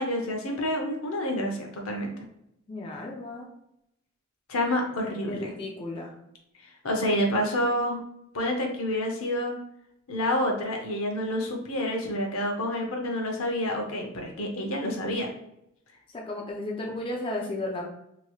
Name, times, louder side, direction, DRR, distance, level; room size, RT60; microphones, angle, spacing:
voice 1, 0.0-2.1 4.5-5.5 6.8-8.0 8.3-9.6 10.1-15.3, left 1 dB, 85° left, 2 dB, 0.7 m, -28 dB
voice 2, 2.7-3.5 5.2-6.1 16.1-17.8, left 2 dB, 25° left, -1 dB, 0.5 m, -34 dB
2.9 x 2.9 x 2.3 m, 0.79 s
head